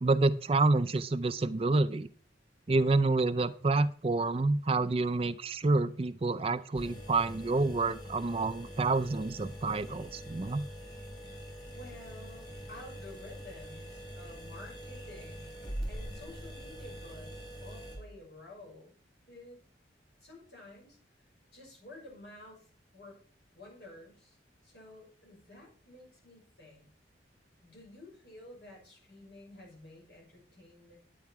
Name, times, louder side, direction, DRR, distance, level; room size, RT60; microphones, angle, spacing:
voice 1, 0.0-2.1 2.7-10.6, right 3 dB, 30° right, 13 dB, 0.4 m, -28 dB
sound 1, 6.7-18.0, equal, 25° left, 3.7 m, -44 dB
voice 2, 11.7-15.5 15.9-19.0 19.3-19.6 20.2-21.0 21.5-23.2 23.5-24.4 24.6-26.9 27.6-31.0, left 2 dB, 70° left, -1 dB, 5.8 m, -51 dB
9.5 x 9.0 x 4.7 m, 0.43 s
head